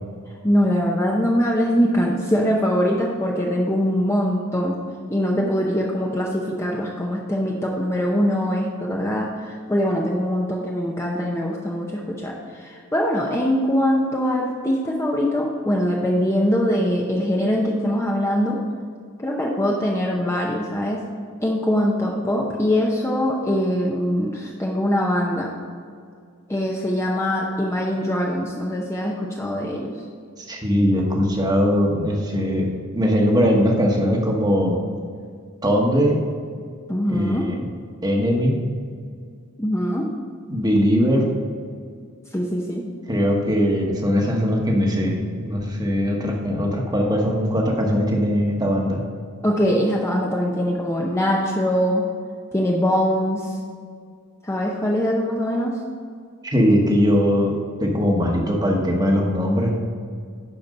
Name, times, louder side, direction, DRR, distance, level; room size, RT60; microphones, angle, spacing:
voice 1, 0.4-4.8 5.1-18.6 19.2-21.0 21.4-25.5 26.5-29.9 36.9-37.5 39.6-40.1 42.3-42.8 49.4-52.0 52.5-53.6 54.4-55.8, equal, 10° left, -2 dB, 0.6 m, -22 dB
voice 2, 30.4-34.8 35.6-36.2 37.1-37.6 38.0-38.6 40.5-41.2 43.1-49.0 56.4-57.5 57.8-59.8, equal, 20° right, 0 dB, 1.1 m, -20 dB
10.5 x 4.3 x 5.3 m, 2.1 s
head